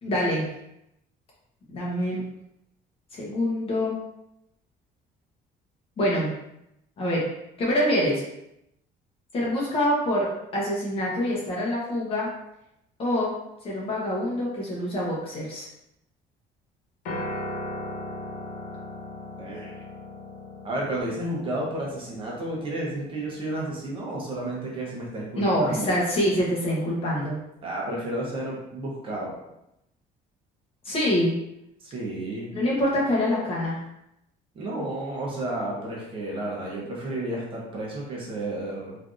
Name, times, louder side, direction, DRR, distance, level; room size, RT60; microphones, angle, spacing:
voice 1, 0.0-0.5 1.7-2.2 3.1-4.0 6.0-6.3 7.0-7.3 7.6-8.2 9.3-12.3 13.0-13.3 13.6-15.7 25.4-27.4 30.8-31.3 32.5-33.8, equal, 35° left, -5 dB, 0.9 m, -25 dB
Piano, 17.1-25.3, left 1 dB, 55° left, 0.7 m, -39 dB
voice 2, 19.4-19.7 20.6-25.9 27.6-29.4 31.8-32.5 34.5-39.0, right 1 dB, 30° right, -3 dB, 0.7 m, -32 dB
3.5 x 2.6 x 2.4 m, 0.83 s
cardioid pair, 175°, 17 cm